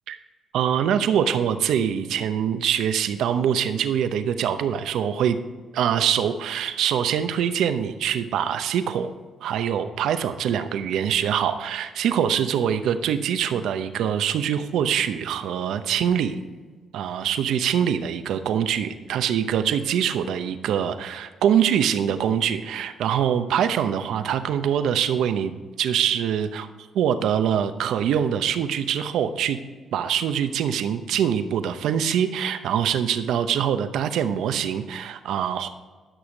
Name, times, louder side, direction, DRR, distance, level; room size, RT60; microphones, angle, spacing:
voice 1, 0.5-5.4 5.7-9.1 9.4-16.4 16.9-25.5 25.8-26.7 26.9-29.6 29.9-35.7, right 9 dB, 80° right, 10 dB, 0.7 m, -24 dB
11.5 x 6.3 x 5.1 m, 1.4 s
cardioid pair, 90°, 0 cm